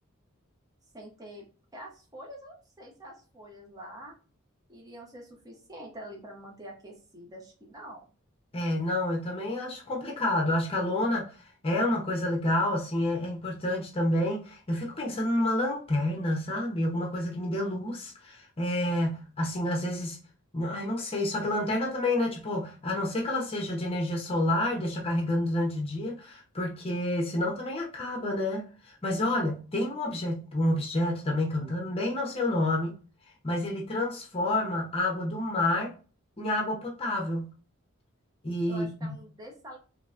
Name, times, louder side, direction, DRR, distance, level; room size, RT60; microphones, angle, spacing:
voice 1, 0.9-1.5 1.7-4.2 4.7-8.1 38.7-39.8, equal, 20° right, 0.9 m, -46 dB
voice 2, 8.5-11.3 11.6-20.2 20.5-33.0 33.4-35.9 36.4-37.5 38.4-39.2, left 1 dB, 30° left, 0.8 m, -29 dB
3.2 x 2.8 x 3.6 m
head